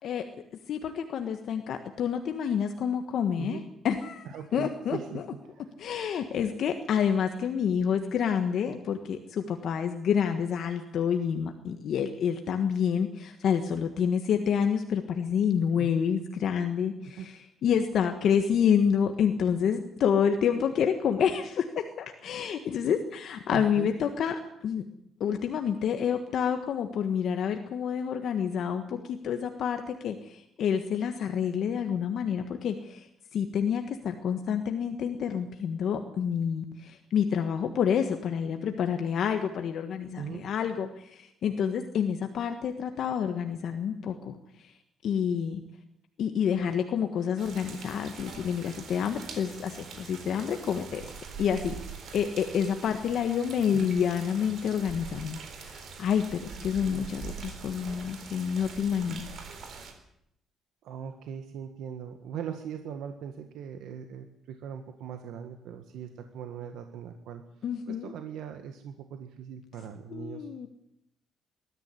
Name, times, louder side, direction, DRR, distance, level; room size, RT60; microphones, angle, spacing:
voice 1, 0.7-4.3 4.5-5.2 5.8-17.3 17.6-24.8 25.2-33.1 33.3-44.7 45.0-45.6 46.2-51.0 51.4-51.8 52.1-59.3 67.6-68.1 70.1-70.7, left 7 dB, 50° left, 6 dB, 1.5 m, -28 dB
voice 2, 4.2-5.7 15.7-16.0 17.2-17.3 23.5-23.9 40.2-40.4 53.7-53.9 60.8-67.4 67.9-70.5, right 8 dB, 70° right, 7 dB, 1.7 m, -40 dB
sound 1, 47.4-59.9, right 5 dB, 50° right, 4.1 m, -43 dB
20.5 x 13.5 x 9.8 m, 0.77 s
cardioid pair, 165°, 0 cm